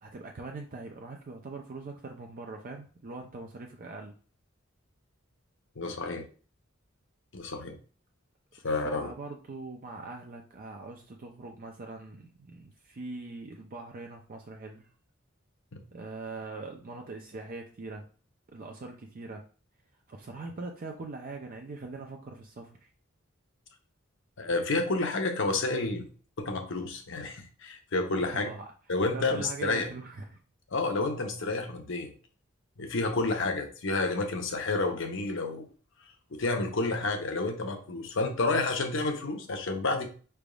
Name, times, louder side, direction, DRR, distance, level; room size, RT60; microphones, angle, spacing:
voice 1, 0.0-4.1 8.8-14.9 15.9-18.1 18.5-19.4 20.1-22.9 28.2-28.7 29.1-30.4, right 3 dB, 45° right, 2 dB, 0.5 m, -42 dB
voice 2, 5.8-6.2 7.3-7.8 8.6-9.1 24.4-26.1 26.4-28.5 28.9-29.9 30.7-32.1 32.8-35.7 36.3-40.1, left 3 dB, 65° left, 4 dB, 0.7 m, -30 dB
5.0 x 3.4 x 2.3 m, 0.39 s
head